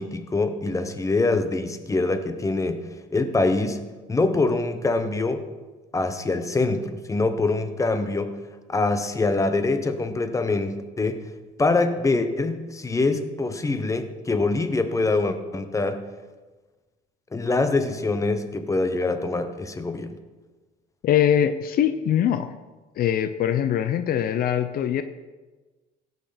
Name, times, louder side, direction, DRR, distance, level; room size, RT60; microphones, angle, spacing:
voice 1, 0.0-3.8 4.1-5.4 5.9-8.4 8.7-11.2 11.6-16.0 17.3-20.1, left 3 dB, 20° left, 9 dB, 1.1 m, -24 dB
voice 2, 21.0-22.5 23.0-25.0, left 10 dB, 60° left, 11 dB, 0.6 m, -22 dB
17.0 x 6.7 x 5.1 m, 1.3 s
cardioid pair, 110°, 17 cm